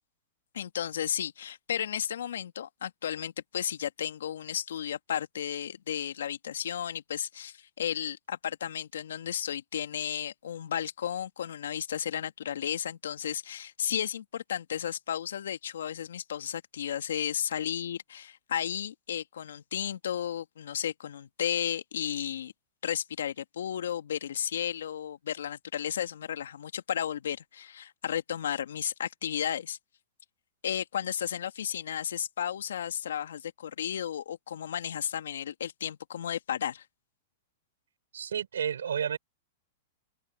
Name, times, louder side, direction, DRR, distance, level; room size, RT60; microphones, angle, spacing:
voice 1, 0.5-22.5 22.8-29.8 30.6-36.8, left 9 dB, 75° left, 2.3 m, -33 dB
voice 2, 38.1-39.2, right 8 dB, 80° right, 7.4 m, -31 dB
open air
hypercardioid pair, 110°, 0 cm